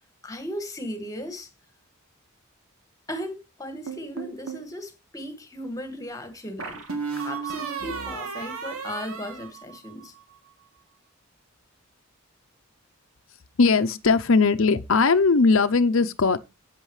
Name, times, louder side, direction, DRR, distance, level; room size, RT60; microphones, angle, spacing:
voice 1, 0.2-1.5 3.1-6.8 7.1-10.1, equal, 15° left, 1.9 m, -36 dB
sound 1, 3.9-4.7 6.6-10.2, right 5 dB, 80° right, 2.7 m, -34 dB
voice 2, 13.6-16.4, left 4 dB, 65° left, 0.7 m, -19 dB
12.5 x 9.2 x 3.2 m
head